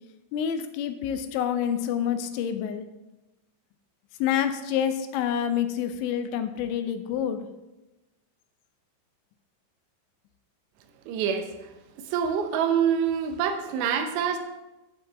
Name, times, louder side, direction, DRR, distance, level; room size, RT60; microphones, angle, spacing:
voice 1, 0.3-2.8 4.2-7.5, left 9 dB, 90° left, 9 dB, 3.0 m, -27 dB
voice 2, 11.1-11.7 12.0-14.4, right 7 dB, 80° right, 5 dB, 2.9 m, -26 dB
8.8 x 8.7 x 3.4 m, 1.0 s
omnidirectional pair, 5.1 m